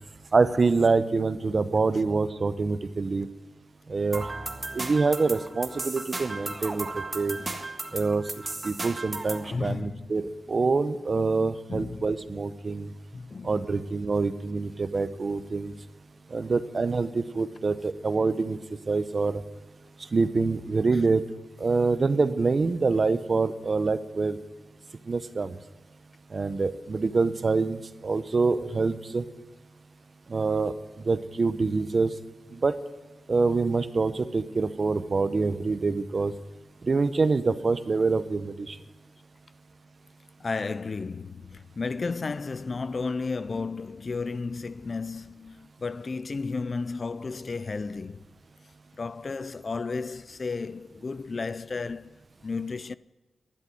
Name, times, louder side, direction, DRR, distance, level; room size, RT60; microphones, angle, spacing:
voice 1, 0.3-3.3 3.9-4.3 4.7-6.9 7.1-7.4 7.9-8.2 8.6-12.9 13.4-15.7 16.3-18.6 18.9-19.4 20.1-21.2 21.6-24.4 25.1-25.6 26.3-29.2 30.3-30.7 31.0-32.1 32.5-32.7 33.3-36.3 36.8-38.8, right 4 dB, 45° right, 0.9 m, -25 dB
sound 1, 4.1-9.5, right 2 dB, 25° right, 1.7 m, -35 dB
voice 2, 9.4-10.1 11.7-12.1 13.1-13.6 40.4-48.2 49.0-52.2 52.4-52.9, left 4 dB, 45° left, 0.4 m, -33 dB
12.5 x 11.0 x 9.2 m
wide cardioid pair, 110°, 0 cm